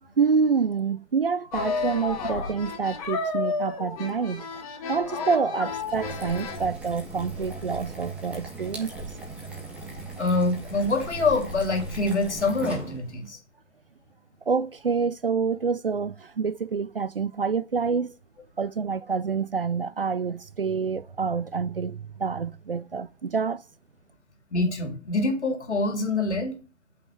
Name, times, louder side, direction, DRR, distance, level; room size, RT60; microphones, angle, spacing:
voice 1, 0.2-4.5 4.9-9.1 14.5-18.1 18.6-23.6, right 5 dB, 50° right, 0.5 m, -27 dB
sound 1, 1.5-6.7, left 4 dB, 25° left, 2.3 m, -32 dB
sound 2, 5.6-13.3, right 3 dB, 5° right, 1.4 m, -38 dB
voice 2, 10.2-13.4 24.5-26.6, left 3 dB, 60° left, 3.0 m, -25 dB
8.8 x 5.6 x 7.5 m
figure-of-eight pair, 140°, 39 cm